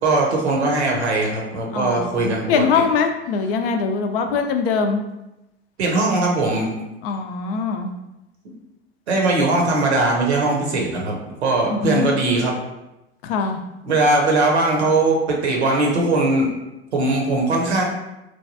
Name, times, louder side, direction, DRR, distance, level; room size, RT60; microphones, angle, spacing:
voice 1, 0.0-2.8 5.8-6.7 9.1-12.5 13.8-16.5 16.9-17.8, right 2 dB, 85° right, 0 dB, 0.8 m, -20 dB
voice 2, 1.7-5.0 7.0-7.9 11.7-12.1 13.2-13.6, left 5 dB, 65° left, 6 dB, 0.5 m, -22 dB
3.1 x 2.3 x 2.6 m, 0.95 s
hypercardioid pair, 85°, 32 cm